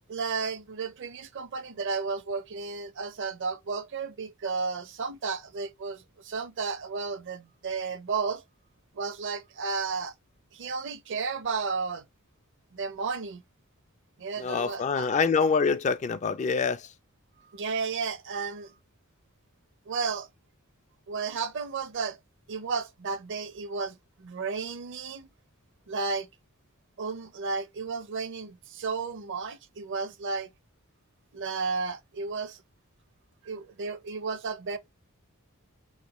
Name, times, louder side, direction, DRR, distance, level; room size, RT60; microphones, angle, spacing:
voice 1, 0.1-8.4 8.9-10.1 10.5-12.0 12.7-13.4 14.2-15.1 17.5-18.7 19.9-20.3 21.1-22.2 22.5-25.3 25.9-26.3 27.0-30.5 31.3-32.6 33.4-34.8, right 4 dB, 60° right, 0.6 m, -33 dB
voice 2, 14.4-16.8, left 5 dB, 35° left, 0.3 m, -25 dB
4.9 x 2.2 x 3.0 m
head